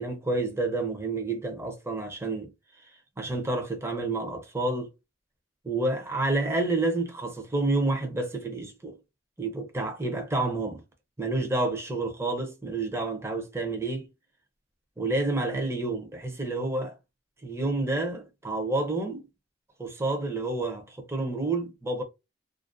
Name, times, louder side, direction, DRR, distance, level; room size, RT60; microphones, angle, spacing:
voice 1, 0.0-2.5 3.2-4.9 5.6-9.0 9.4-10.8 11.2-14.1 15.0-16.9 17.4-19.3 19.8-22.0, right 2 dB, 15° right, 0.5 m, -29 dB
2.4 x 2.1 x 2.5 m
head